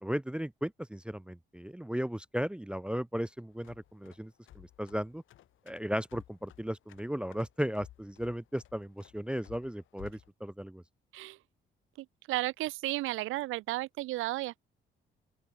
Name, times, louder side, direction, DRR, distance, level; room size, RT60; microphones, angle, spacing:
voice 1, 0.0-5.2 5.7-10.8, equal, 5° right, 0.5 m, -36 dB
sound 1, 3.5-10.3, left 13 dB, 80° left, 5.6 m, -56 dB
voice 2, 12.3-14.6, right 18 dB, 90° right, 0.6 m, -33 dB
open air
cardioid pair, 90°, 20 cm